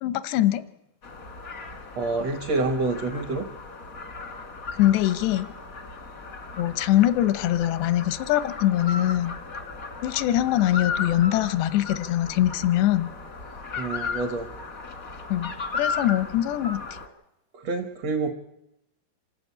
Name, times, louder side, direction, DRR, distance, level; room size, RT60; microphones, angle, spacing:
voice 1, 0.0-0.7 4.7-5.5 6.6-9.3 10.0-13.1 15.3-16.8, left 13 dB, 90° left, 12 dB, 3.0 m, -23 dB
sound 1, 1.0-17.1, left 4 dB, 70° left, 0.8 m, -36 dB
voice 2, 2.0-3.5 13.8-14.5 17.5-18.3, right 3 dB, 70° right, 6 dB, 1.6 m, -27 dB
27.0 x 12.0 x 8.4 m, 0.88 s
omnidirectional pair, 4.8 m